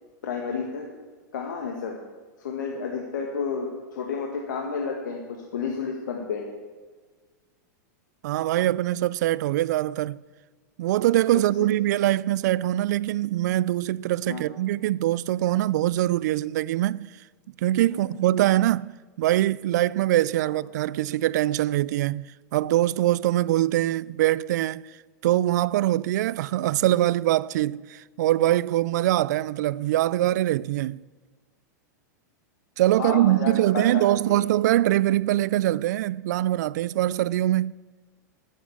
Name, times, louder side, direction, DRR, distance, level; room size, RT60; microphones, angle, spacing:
voice 1, 0.2-0.9 1.3-2.0 2.4-6.5 11.3-11.7 14.3-14.4 17.9-18.2 33.0-34.4, left 5 dB, 90° left, 1.9 m, -31 dB
voice 2, 8.2-10.2 10.8-17.1 17.6-18.9 19.2-24.8 25.2-31.0 32.8-37.7, right 14 dB, 65° right, 0.4 m, -23 dB
11.0 x 8.5 x 9.5 m
supercardioid pair, 150°, 10 cm